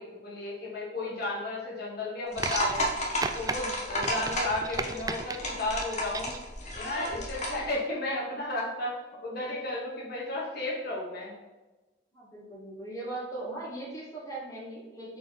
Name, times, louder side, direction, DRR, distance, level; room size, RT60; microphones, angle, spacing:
voice 1, 0.0-2.9 3.3-6.3 6.7-9.0 9.2-11.4, left 2 dB, 60° left, -4 dB, 1.6 m, -33 dB
sound 1, 2.3-7.6, left 1 dB, 40° left, 1.3 m, -33 dB
sound 2, 2.4-2.9 3.2-3.6 4.0-5.4 5.8-6.4 7.5-7.6, right 4 dB, 20° right, 0.3 m, -35 dB
voice 2, 12.1-15.2, right 2 dB, 20° left, -5 dB, 1.9 m, -39 dB
6.5 x 4.4 x 4.1 m, 1.1 s
head